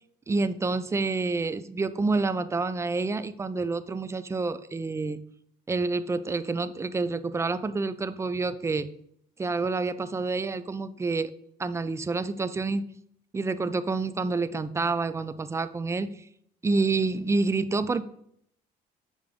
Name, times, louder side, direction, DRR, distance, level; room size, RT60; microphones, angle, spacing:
voice 1, 0.3-5.2 5.7-8.9 9.4-11.3 11.6-12.8 13.3-16.1 16.6-18.0, right 3 dB, 15° right, 13 dB, 0.4 m, -28 dB
6.6 x 5.0 x 3.5 m, 0.68 s
cardioid pair, 110°, 17 cm